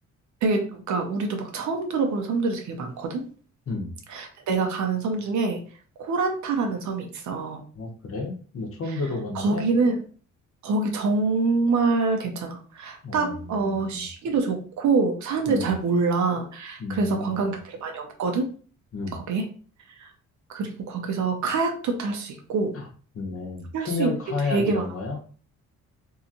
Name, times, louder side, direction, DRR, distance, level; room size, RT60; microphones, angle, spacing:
voice 1, 0.4-3.2 4.1-5.6 6.0-7.6 9.3-9.9 10.6-18.5 19.1-19.4 20.0-20.1 20.5-22.8 23.7-24.1 24.5-24.8, right 4 dB, 70° right, 3 dB, 0.8 m, -25 dB
voice 2, 7.7-9.6 13.0-14.1 15.5-15.7 16.8-17.3 18.9-19.2 22.7-22.9 23.1-25.2, left 3 dB, 50° left, 1 dB, 0.9 m, -31 dB
2.8 x 2.4 x 2.7 m, 0.42 s
cardioid pair, 90°, 30 cm